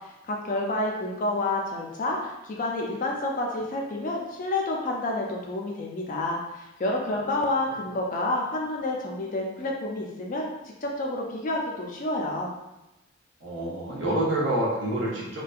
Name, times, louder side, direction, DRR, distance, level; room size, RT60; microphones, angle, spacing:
voice 1, 0.3-12.5, left 2 dB, 40° left, -1 dB, 0.4 m, -29 dB
voice 2, 13.4-15.4, right 1 dB, 60° right, -5 dB, 0.7 m, -27 dB
2.6 x 2.1 x 2.3 m, 0.98 s
head